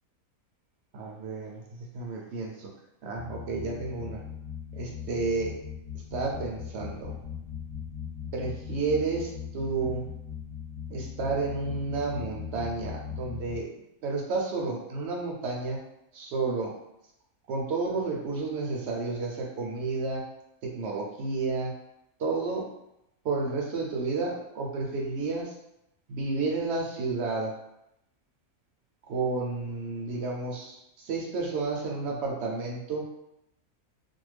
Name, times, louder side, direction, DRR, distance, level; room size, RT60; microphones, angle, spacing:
voice 1, 0.9-1.6 1.9-2.7 3.0-4.2 4.7-5.5 6.1-7.2 8.3-10.1 10.9-13.7 14.0-15.8 16.1-16.7 17.5-20.3 20.6-21.7 22.2-22.7 23.2-25.5 26.1-27.5 29.1-33.1, right 3 dB, 65° right, 0 dB, 0.8 m, -31 dB
sound 1, 3.1-13.6, left 8 dB, 35° left, 0.9 m, -39 dB
2.5 x 2.1 x 3.2 m, 0.83 s
omnidirectional pair, 1.5 m